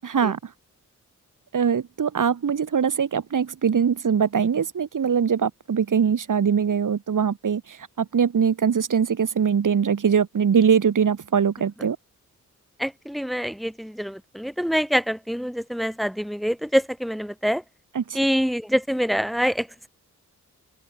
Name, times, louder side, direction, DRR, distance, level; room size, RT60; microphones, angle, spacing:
voice 1, 0.0-0.5 1.5-12.0 17.9-18.2, right 7 dB, 80° right, 6.3 m, -22 dB
voice 2, 12.8-17.6 18.1-19.9, equal, ahead, 6.0 m, -25 dB
open air
wide cardioid pair, 125°, 31 cm